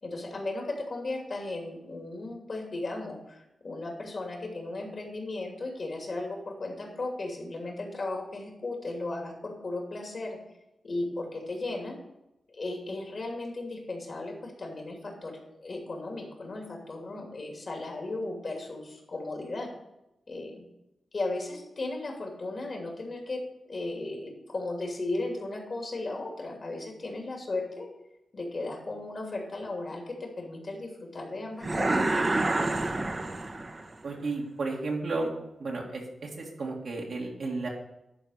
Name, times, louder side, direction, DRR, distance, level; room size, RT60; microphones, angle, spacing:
voice 1, 0.0-10.4 10.8-12.0 12.5-19.7 20.3-20.7 21.1-23.4 23.7-27.9 28.3-32.1, left 2 dB, 55° left, 1 dB, 2.8 m, -36 dB
sound 1, 31.6-33.9, right 2 dB, 35° right, 1.0 m, -28 dB
voice 2, 34.0-35.3 35.6-37.7, right 3 dB, 75° right, -2 dB, 2.1 m, -33 dB
11.0 x 4.4 x 6.6 m, 0.89 s
cardioid pair, 55°, 0 cm